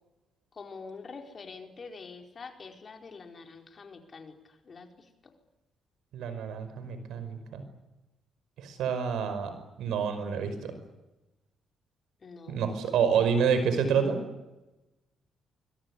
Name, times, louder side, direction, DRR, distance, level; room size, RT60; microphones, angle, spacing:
voice 1, 0.5-5.1 12.2-12.6, left 4 dB, 40° left, 4 dB, 4.6 m, -46 dB
voice 2, 6.1-7.6 8.6-10.7 12.5-14.2, right 6 dB, 80° right, 10 dB, 5.3 m, -28 dB
24.5 x 23.0 x 9.9 m, 1.0 s
cardioid pair, 90°, 0 cm